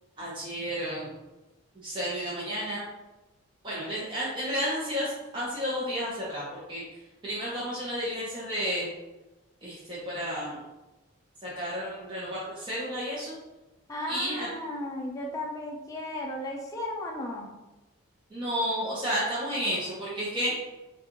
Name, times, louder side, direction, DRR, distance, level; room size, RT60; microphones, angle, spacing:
voice 1, 0.2-1.1 1.8-2.8 3.6-6.8 7.2-8.9 9.6-10.6 11.4-13.3 14.1-14.5 18.3-20.5, equal, 20° right, -8 dB, 0.8 m, -31 dB
voice 2, 13.9-17.5, left 1 dB, 15° left, -2 dB, 0.5 m, -35 dB
5.9 x 2.5 x 3.0 m, 1.1 s
head